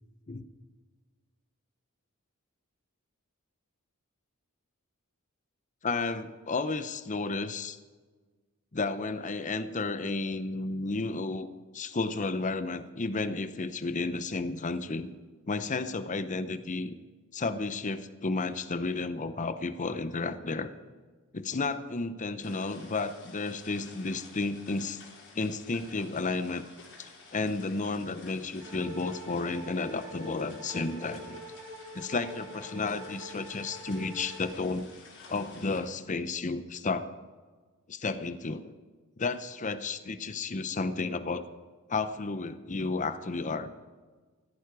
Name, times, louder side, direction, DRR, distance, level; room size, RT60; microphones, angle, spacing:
voice 1, 5.8-7.8 8.7-11.5 11.7-15.1 15.5-17.0 17.3-20.7 21.3-25.0 25.3-26.6 27.0-31.4 31.9-34.9 35.3-37.1 37.9-38.7 39.2-41.5 41.9-43.7, left 3 dB, 35° left, 12 dB, 0.7 m, -32 dB
sound 1, 22.4-35.8, left 4 dB, 60° left, 4.2 m, -52 dB
sound 2, 28.6-34.5, equal, 60° right, 5.3 m, -45 dB
15.5 x 14.0 x 4.8 m, 1.4 s
head